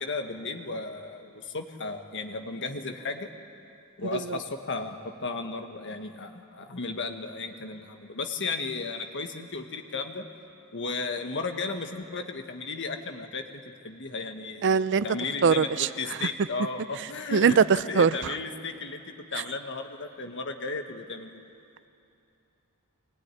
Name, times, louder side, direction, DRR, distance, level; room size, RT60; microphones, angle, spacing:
voice 1, 0.0-3.3 4.0-10.3 10.7-17.6 17.9-19.0 19.3-21.4, left 3 dB, 55° left, 5 dB, 1.5 m, -34 dB
voice 2, 14.6-15.1 15.4-15.9 16.2-16.3 17.3-18.3, right 6 dB, 55° right, 15 dB, 0.5 m, -22 dB
23.0 x 18.0 x 9.9 m, 2.7 s
head